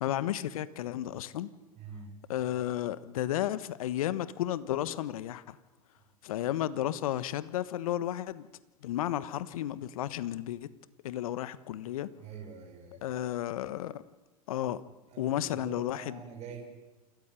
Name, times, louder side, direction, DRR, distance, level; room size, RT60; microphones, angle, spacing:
voice 1, 0.0-1.5 2.3-5.6 6.2-8.5 8.8-10.7 11.0-12.1 13.0-14.0 14.5-14.8 15.2-16.2, left 12 dB, 65° left, 15 dB, 1.3 m, -33 dB
voice 2, 1.8-2.2 12.2-13.0 15.1-16.6, right 6 dB, 35° right, 2 dB, 6.2 m, -45 dB
28.0 x 14.5 x 10.0 m, 1.1 s
hypercardioid pair, 105°, 19 cm